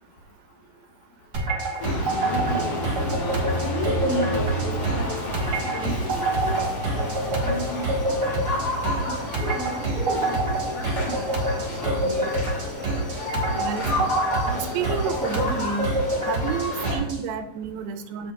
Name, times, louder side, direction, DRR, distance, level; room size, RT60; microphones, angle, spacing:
sound 1, 1.3-17.2, right 2 dB, 40° right, 1.5 m, -27 dB
sound 2, 1.8-17.0, left 1 dB, 50° left, 4.2 m, -31 dB
voice 1, 1.9-7.8 8.1-8.4 9.0-9.8 10.3-10.5 10.8-12.3, left 1 dB, 65° left, 0 dB, 2.3 m, -34 dB
sound 3, 6.1-16.7, right 1 dB, 10° right, 0.6 m, -40 dB
voice 2, 13.6-14.1 14.5-15.9 16.3-18.3, right 7 dB, 85° right, 8 dB, 2.3 m, -30 dB
14.5 x 5.1 x 2.4 m, 0.88 s
omnidirectional pair, 4.2 m